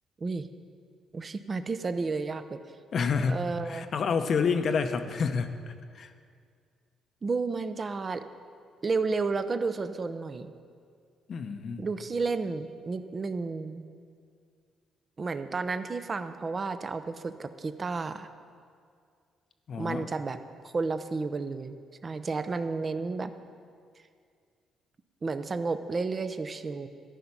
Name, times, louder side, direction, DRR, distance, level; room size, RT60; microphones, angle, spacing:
voice 1, 1.1-2.6 3.3-3.9 7.2-8.2 8.8-10.5 11.8-13.8 15.2-18.3 19.8-20.4 20.6-23.3 25.2-26.9, right 4 dB, 35° right, 10 dB, 0.7 m, -32 dB
voice 2, 2.9-3.4 3.6-6.1 11.3-11.8 19.7-20.0, left 5 dB, 55° left, 8 dB, 0.8 m, -29 dB
13.5 x 5.9 x 9.7 m, 2.2 s
cardioid pair, 90°, 0 cm